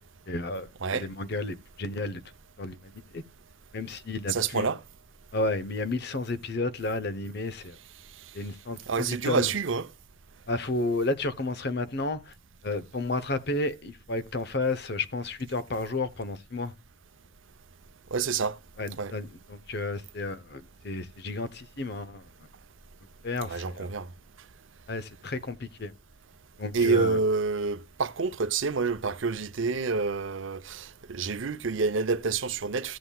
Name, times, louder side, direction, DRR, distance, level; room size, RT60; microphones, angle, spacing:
voice 1, 0.3-2.2 2.6-3.2 3.7-4.7 5.3-7.8 8.3-9.5 10.5-12.3 12.6-16.7 18.8-22.2 23.2-23.9 24.9-25.9 26.6-27.2, left 2 dB, 50° left, 0.8 m, -32 dB
voice 2, 4.3-4.8 8.9-9.9 18.1-18.6 19.0-19.1 23.5-24.1 26.7-33.0, right 4 dB, 70° right, 0.7 m, -28 dB
15.5 x 7.8 x 2.3 m
head